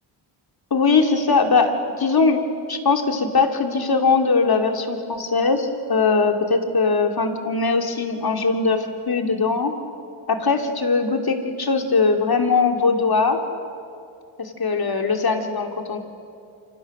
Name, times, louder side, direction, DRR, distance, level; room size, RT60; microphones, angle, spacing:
voice 1, 0.7-2.4 2.7-9.7 10.3-13.4 14.4-16.0, left 4 dB, 45° left, 4 dB, 2.9 m, -20 dB
28.0 x 25.5 x 6.3 m, 2.5 s
supercardioid pair, 55°, 49 cm